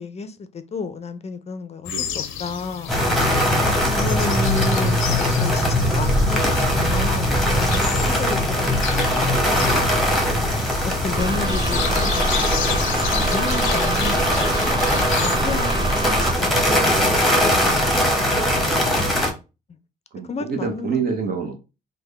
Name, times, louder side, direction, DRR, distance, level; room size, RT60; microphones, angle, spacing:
voice 1, 0.0-3.5 4.0-8.7 9.2-10.2 10.8-12.3 12.6-13.0 13.3-14.3 15.2-17.3 19.7-19.8 20.3-21.0, left 4 dB, 35° left, 0.5 m, -32 dB
sound 1, 1.8-15.4, left 8 dB, 85° left, 0.6 m, -32 dB
voice 2, 1.9-2.2 8.3-8.6 11.5-11.8 18.5-19.2 20.1-21.6, right 5 dB, 50° right, 0.8 m, -29 dB
sound 2, 2.9-19.3, equal, ahead, 1.0 m, -20 dB
sound 3, 11.2-16.3, right 3 dB, 25° right, 0.4 m, -26 dB
3.5 x 2.2 x 3.3 m
cardioid pair, 90°, 20 cm